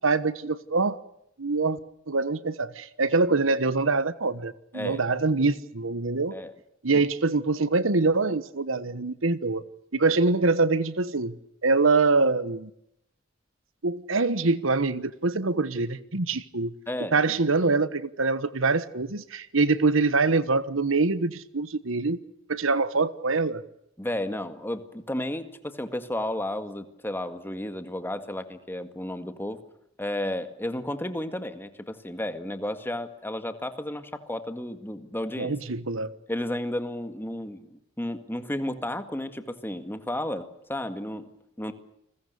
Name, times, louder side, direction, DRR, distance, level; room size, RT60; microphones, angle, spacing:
voice 1, 0.0-1.0 1.4-1.8 2.1-6.4 6.8-9.6 9.9-11.3 11.6-12.7 13.8-16.7 17.1-22.2 22.5-23.6 35.4-36.1, right 3 dB, 70° right, 1.2 m, -24 dB
voice 2, 16.9-17.3 24.0-29.6 30.0-35.5 36.3-41.3 41.6-41.7, left 1 dB, 10° left, 2.0 m, -33 dB
29.5 x 21.5 x 6.8 m
head